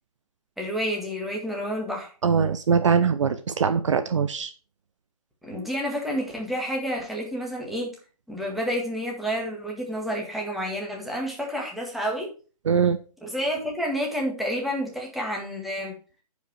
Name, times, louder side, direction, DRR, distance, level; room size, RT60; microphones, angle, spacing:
voice 1, 0.6-2.1 5.4-8.0 8.3-12.3 13.2-16.0, equal, ahead, -1 dB, 1.9 m, -29 dB
voice 2, 2.2-4.5 12.6-13.0, right 6 dB, 50° right, 11 dB, 0.7 m, -22 dB
10.0 x 5.2 x 4.6 m, 0.36 s
figure-of-eight pair, 140°, 20 cm